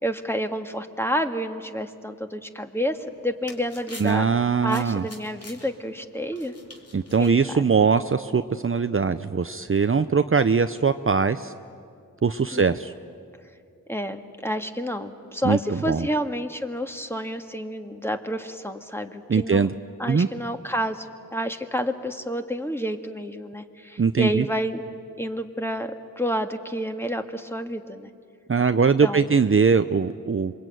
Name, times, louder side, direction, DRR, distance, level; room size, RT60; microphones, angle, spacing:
voice 1, 0.0-3.0 3.2-4.2 4.6-6.5 7.2-7.6 12.5-12.6 13.9-19.7 20.0-24.8 25.2-28.1 29.0-29.3, equal, 5° left, 5 dB, 1.9 m, -29 dB
sound 1, 3.0-8.1, left 1 dB, 45° left, 3.3 m, -48 dB
voice 2, 4.0-5.0 6.9-11.5 12.2-12.9 15.4-16.1 19.3-19.7 20.1-20.3 24.0-24.5 28.5-30.5, right 5 dB, 40° right, 10 dB, 0.7 m, -21 dB
27.0 x 23.0 x 9.2 m, 2.4 s
cardioid pair, 45°, 34 cm